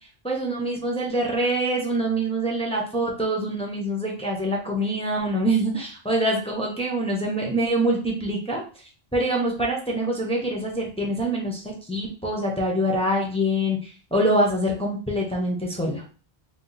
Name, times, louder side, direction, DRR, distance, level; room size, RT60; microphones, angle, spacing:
voice 1, 0.2-8.6 9.1-11.6 11.9-13.8 14.1-16.0, right 1 dB, 5° left, -2 dB, 0.6 m, -25 dB
2.8 x 2.4 x 3.9 m, 0.38 s
omnidirectional pair, 1.1 m